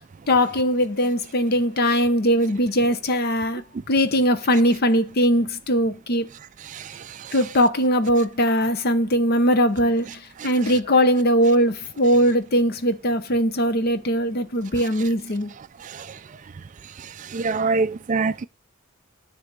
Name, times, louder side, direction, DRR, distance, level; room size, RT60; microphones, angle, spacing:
voice 1, 0.3-6.3 7.3-15.5, equal, 45° left, 0.8 m, -20 dB
voice 2, 17.3-18.5, right 4 dB, 35° right, 0.3 m, -23 dB
10.0 x 3.4 x 6.6 m
head